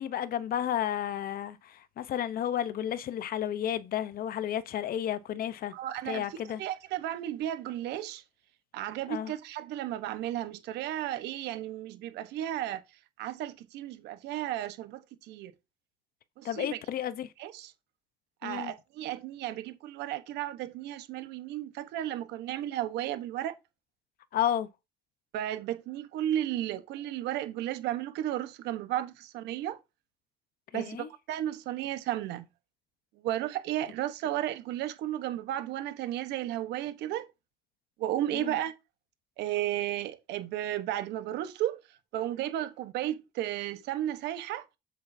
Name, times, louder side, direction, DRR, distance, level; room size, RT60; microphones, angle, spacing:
voice 1, 0.0-5.7 6.0-6.6 9.1-9.3 16.4-17.3 18.4-18.7 24.3-24.7 30.7-31.1 38.3-38.6, left 10 dB, 60° left, 0.9 m, -32 dB
voice 2, 5.7-6.2 6.6-8.2 8.7-12.8 13.2-15.5 16.4-16.8 17.4-17.7 18.4-23.6 25.3-29.8 30.7-32.5 33.2-37.3 38.0-38.7 39.4-41.8 42.1-44.6, right 12 dB, 85° right, 1.2 m, -34 dB
8.1 x 7.4 x 2.8 m
cardioid pair, 110°, 17 cm